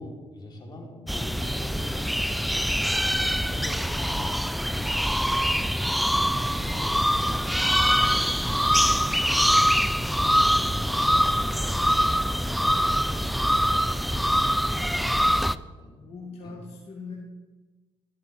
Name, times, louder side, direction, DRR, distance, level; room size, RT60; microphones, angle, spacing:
voice 1, 0.0-2.1 2.8-8.3 8.6-14.0 15.8-16.0 16.4-16.6, left 1 dB, 40° left, -1 dB, 3.3 m, -42 dB
sound 1, 1.1-15.6, equal, ahead, 0.4 m, -24 dB
voice 2, 15.3-15.6 16.0-17.1, left 4 dB, 65° left, -3 dB, 2.0 m, -41 dB
12.5 x 8.9 x 4.2 m, 1.2 s
supercardioid pair, 60°, 11 cm